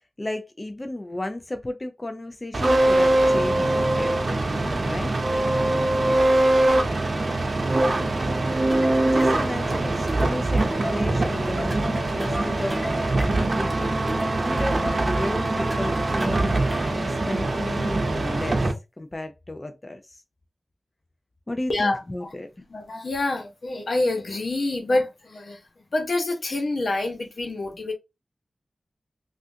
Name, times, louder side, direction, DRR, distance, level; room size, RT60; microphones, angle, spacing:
voice 1, 0.2-5.1 9.0-18.7 19.0-20.2 21.5-22.5, left 1 dB, 35° left, 0.5 m, -34 dB
sound 1, 2.5-18.7, right 2 dB, 60° right, 0.7 m, -23 dB
sound 2, 8.7-17.1, equal, 5° right, 1.0 m, -35 dB
voice 2, 21.7-22.3 22.7-27.9, left 2 dB, 80° left, 1.0 m, -27 dB
3.2 x 2.5 x 2.7 m
cardioid pair, 50°, 0 cm